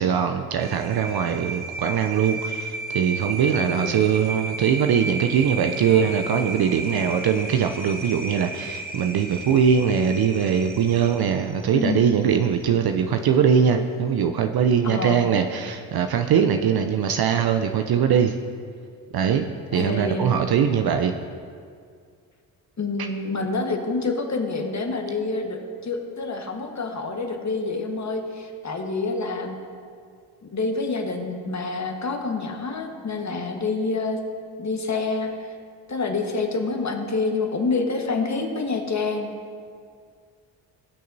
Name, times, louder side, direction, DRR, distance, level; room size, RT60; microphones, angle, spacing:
voice 1, 0.0-18.4 19.1-21.1 23.0-23.1, right 7 dB, 50° right, 6 dB, 0.6 m, -21 dB
sound 1, 0.6-12.6, right 2 dB, 20° right, 1.2 m, -34 dB
voice 2, 3.6-4.0 11.7-12.2 14.8-15.2 19.7-20.3 22.8-29.6 30.4-34.2 34.6-35.5 35.9-39.3, left 3 dB, 35° left, 3 dB, 1.4 m, -27 dB
18.0 x 6.4 x 2.7 m, 2.2 s
hypercardioid pair, 40°, 50 cm